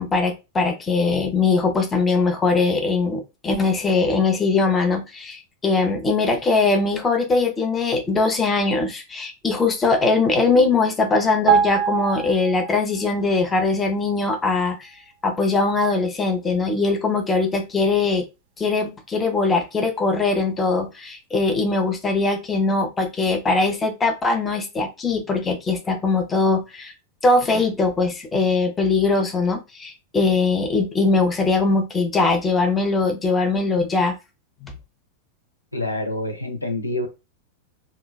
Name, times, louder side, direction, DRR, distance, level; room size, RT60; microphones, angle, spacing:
voice 1, 0.0-14.9 15.2-18.3 18.6-26.9 27.2-34.1 34.6-34.8, left 3 dB, 15° left, 5 dB, 0.6 m, -21 dB
sound 1, 11.5-13.1 13.4-13.6, right 7 dB, 50° right, 0.4 m, -23 dB
voice 2, 35.7-37.1, left 1 dB, 85° left, 4 dB, 0.5 m, -27 dB
3.0 x 2.2 x 2.2 m, 0.26 s
figure-of-eight pair, 90°, 0 cm